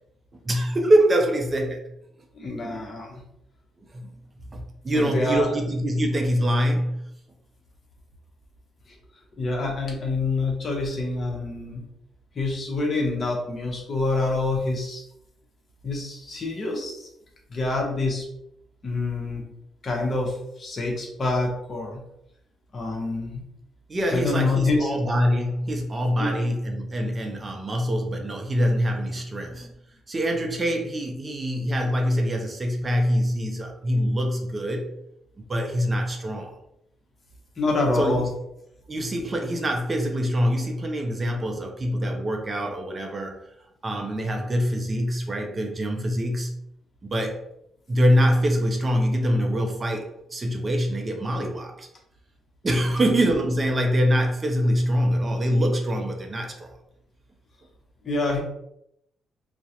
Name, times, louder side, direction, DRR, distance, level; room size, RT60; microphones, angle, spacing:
voice 1, 0.4-1.8 2.6-2.8 3.9-4.1 4.5-7.0 23.9-29.7 30.1-34.9 35.5-36.6 37.9-38.2 38.9-43.4 43.8-46.6 47.0-47.4 47.9-51.9 52.6-56.7, equal, 30° right, 2 dB, 0.4 m, -24 dB
voice 2, 2.3-3.2 4.9-5.6 9.4-11.8 12.3-15.0 15.8-17.1 17.5-18.3 18.8-19.4 19.8-22.0 22.7-23.4 24.1-24.9 26.2-26.4 29.5-29.7 37.6-38.3 58.0-58.4, left 3 dB, 40° left, 0 dB, 0.7 m, -26 dB
2.3 x 2.0 x 2.8 m, 0.78 s
cardioid pair, 90°, 0 cm